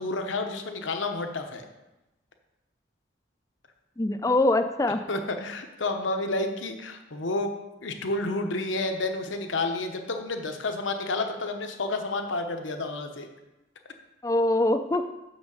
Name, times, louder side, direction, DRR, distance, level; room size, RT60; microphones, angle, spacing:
voice 1, 0.0-1.7 5.1-7.5 7.8-13.3, left 2 dB, 80° left, 5 dB, 0.9 m, -30 dB
voice 2, 4.0-5.0 14.2-15.0, left 2 dB, 15° left, 9 dB, 0.4 m, -23 dB
6.3 x 6.1 x 6.5 m, 1.0 s
head